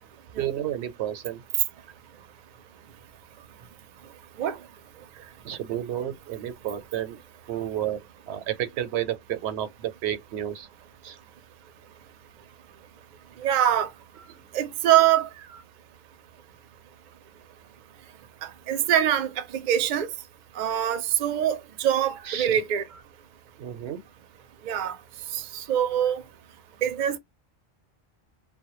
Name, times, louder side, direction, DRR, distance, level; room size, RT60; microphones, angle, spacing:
voice 1, 0.3-1.4 5.1-7.2 7.5-10.7 11.0-11.2 14.2-14.4 15.5-15.6 22.2-22.6 22.9-23.0 23.6-24.0, right 11 dB, 85° right, 0.9 m, -32 dB
voice 2, 13.4-13.9 14.5-15.3 18.7-20.1 20.6-22.8 24.7-25.0 25.3-26.2 26.8-27.2, right 10 dB, 55° right, 0.5 m, -23 dB
2.1 x 2.1 x 2.9 m
omnidirectional pair, 1.1 m